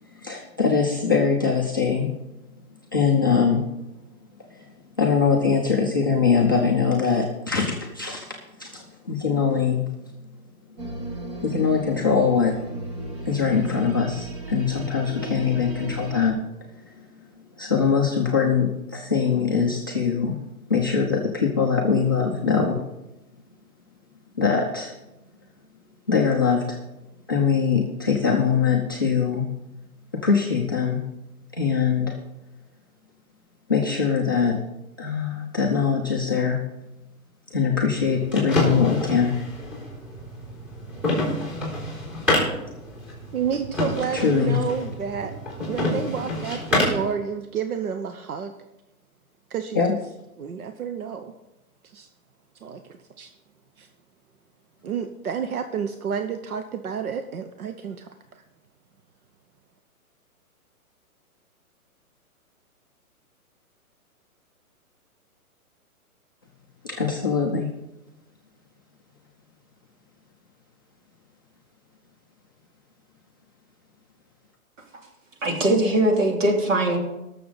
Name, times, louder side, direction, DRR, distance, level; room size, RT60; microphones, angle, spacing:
voice 1, 0.1-2.1 2.9-3.6 4.5-4.6 5.0-8.3 8.6-9.9 11.4-12.5 13.3-16.4 17.6-20.3 20.7-22.8 24.4-24.9 26.1-26.8 27.3-29.5 30.1-31.0 31.5-32.2 33.7-34.6 35.0-36.6 37.5-39.4 44.1-44.6 49.7-49.9 66.8-67.7, left 6 dB, 15° left, -4 dB, 0.4 m, -22 dB
sound 1, 10.8-16.3, right 2 dB, 25° right, 1.1 m, -35 dB
sound 2, 37.9-47.1, left 1 dB, 5° right, 3.7 m, -28 dB
voice 2, 43.3-45.3 45.7-48.5 49.5-49.8 50.4-51.3 51.8-52.1 52.6-53.3 53.8-53.9 54.8-58.4, right 7 dB, 75° right, 7 dB, 1.0 m, -30 dB
voice 3, 75.4-77.0, right 1 dB, 55° right, 1 dB, 3.0 m, -21 dB
19.0 x 6.8 x 4.0 m, 0.96 s
hypercardioid pair, 155°, 44 cm